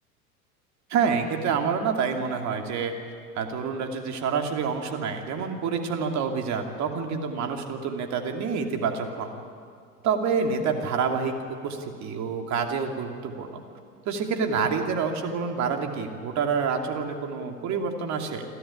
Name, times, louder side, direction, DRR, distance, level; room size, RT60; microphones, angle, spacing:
voice 1, 0.9-2.9 3.3-9.3 10.0-13.6 14.1-18.5, right 5 dB, 35° right, 4 dB, 2.9 m, -27 dB
28.0 x 12.5 x 10.0 m, 2.3 s
figure-of-eight pair, 85°, 46 cm